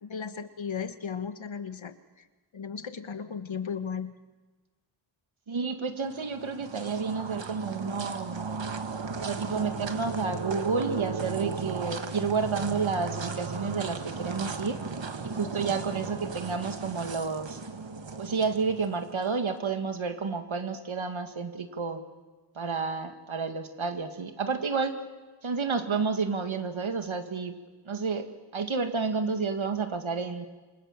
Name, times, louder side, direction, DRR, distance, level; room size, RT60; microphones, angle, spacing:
voice 1, 0.0-2.2 2.5-4.1, left 6 dB, 75° left, 10 dB, 1.6 m, -36 dB
voice 2, 5.5-8.5 9.2-14.8 15.2-17.6 18.2-22.0 22.6-25.0 25.4-27.5 27.9-30.4, right 5 dB, 85° right, 7 dB, 2.3 m, -30 dB
sound 1, 6.0-19.3, right 4 dB, 70° right, 1.8 m, -36 dB
28.0 x 25.5 x 7.5 m, 1.3 s
wide cardioid pair, 95°, 46 cm